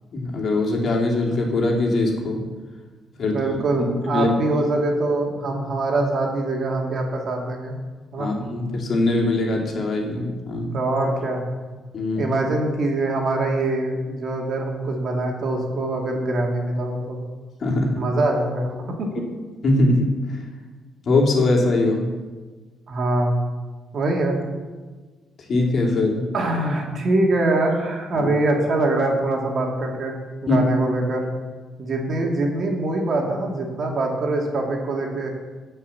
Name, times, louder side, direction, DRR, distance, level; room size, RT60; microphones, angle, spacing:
voice 1, 0.1-2.4 3.2-3.4 3.8-4.3 8.2-10.7 11.9-12.4 17.6-18.0 19.6-20.4 21.1-22.1 25.5-26.3 28.1-28.3 30.5-30.6, left 2 dB, 55° left, -1 dB, 2.8 m, -21 dB
voice 2, 3.2-7.8 8.1-8.3 10.5-11.4 12.1-17.2 18.0-18.7 19.0-19.1 22.9-23.4 23.9-24.4 26.3-30.2 30.4-31.3 31.8-35.3, right 2 dB, 55° right, 0 dB, 2.5 m, -23 dB
14.5 x 5.7 x 7.0 m, 1.4 s
cardioid pair, 90°, 0 cm